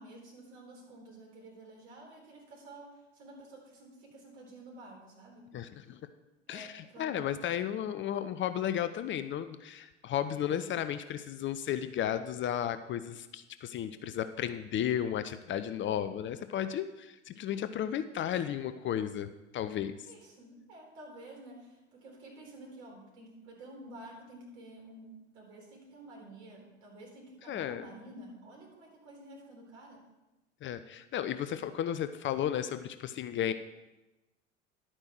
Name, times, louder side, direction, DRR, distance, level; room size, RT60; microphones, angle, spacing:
voice 1, 0.0-5.5 6.5-7.2 20.1-30.1, right 1 dB, 65° right, -1 dB, 4.0 m, -51 dB
voice 2, 5.5-6.0 6.5-20.0 27.5-27.9 30.6-33.5, left 10 dB, 30° left, 11 dB, 0.6 m, -34 dB
11.5 x 8.9 x 4.5 m, 1.0 s
figure-of-eight pair, 70°, 37 cm